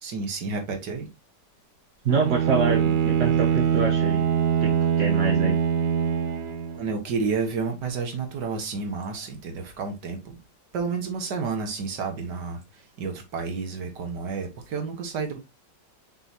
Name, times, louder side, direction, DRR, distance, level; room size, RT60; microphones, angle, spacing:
voice 1, 0.0-1.1 6.7-10.4 10.7-15.4, right 4 dB, 70° right, 2.0 m, -30 dB
voice 2, 2.0-4.2 4.6-5.6, right 4 dB, 50° right, 1.2 m, -26 dB
Bowed string instrument, 2.1-6.9, right 8 dB, 90° right, 1.6 m, -23 dB
6.2 x 5.5 x 2.8 m
omnidirectional pair, 1.9 m